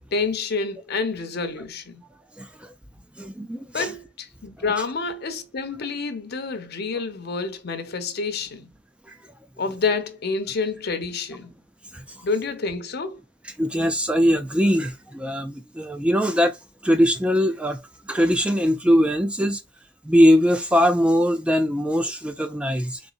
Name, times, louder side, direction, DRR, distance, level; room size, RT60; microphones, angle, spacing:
voice 1, 0.1-2.0 3.7-8.7 9.6-11.5 12.2-13.2, left 4 dB, 55° left, 0.7 m, -28 dB
voice 2, 2.4-2.7 3.2-3.9 9.1-9.2 11.9-12.2 13.6-16.6 16.8-17.8 18.1-19.6 20.0-23.0, equal, 5° right, 0.3 m, -21 dB
4.0 x 3.6 x 2.4 m
head